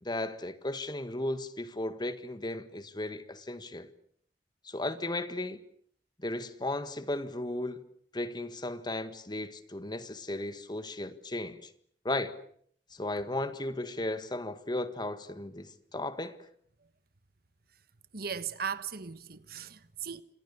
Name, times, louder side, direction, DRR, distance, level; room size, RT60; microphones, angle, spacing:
voice 1, 0.0-3.9 4.6-5.6 6.2-7.8 8.1-11.7 12.0-12.4 12.9-16.4, left 2 dB, 25° left, 1.7 m, -35 dB
voice 2, 18.1-20.2, right 7 dB, 60° right, 1.3 m, -37 dB
28.5 x 26.5 x 7.0 m
head